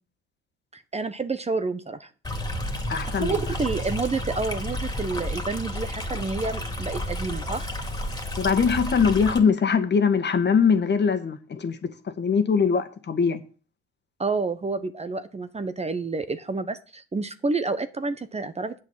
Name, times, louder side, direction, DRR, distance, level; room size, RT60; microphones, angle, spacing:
voice 1, 0.7-2.1 2.9-7.7 14.2-18.7, right 3 dB, 20° right, 1.0 m, -29 dB
Stream, 2.2-9.4, left 1 dB, 15° left, 2.6 m, -31 dB
voice 2, 2.9-3.4 8.4-13.4, left 6 dB, 35° left, 1.7 m, -22 dB
8.3 x 6.6 x 7.4 m
hypercardioid pair, 60°, 30 cm